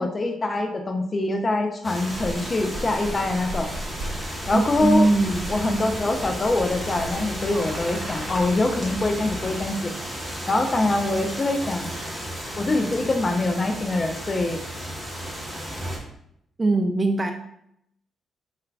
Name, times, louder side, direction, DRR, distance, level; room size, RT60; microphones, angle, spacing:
voice 1, 0.0-3.7 4.5-5.1 5.5-9.9 10.5-11.9 12.6-14.6, left 2 dB, 35° left, 4 dB, 0.5 m, -24 dB
sound 1, 1.8-16.0, equal, 5° right, 1.1 m, -34 dB
sound 2, 2.1-7.1, right 1 dB, 45° right, 1.0 m, -38 dB
sound 3, 3.6-9.6, left 2 dB, 20° left, 1.0 m, -39 dB
voice 2, 4.5-5.5 16.6-17.3, right 2 dB, 30° right, 4 dB, 0.3 m, -21 dB
4.3 x 2.4 x 2.3 m, 0.74 s
hypercardioid pair, 45°, 0 cm